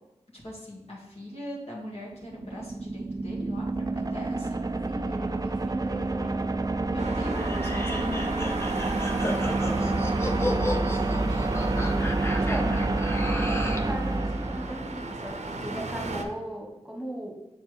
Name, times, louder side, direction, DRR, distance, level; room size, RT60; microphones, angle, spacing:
voice 1, 0.3-4.6 6.9-13.2, left 1 dB, 65° left, -5 dB, 2.1 m, -39 dB
sound 1, 2.0-15.2, right 2 dB, 35° right, 0.4 m, -28 dB
voice 2, 4.9-6.4 12.3-12.7 13.4-17.3, equal, 5° right, -2 dB, 1.4 m, -37 dB
Traffic noise roadway noise, 7.0-16.2, right 2 dB, 90° right, 0.7 m, -37 dB
sound 2, 7.4-13.9, left 1 dB, 25° left, 0.8 m, -34 dB
7.4 x 4.4 x 3.4 m, 1.0 s
wide cardioid pair, 50°, 11 cm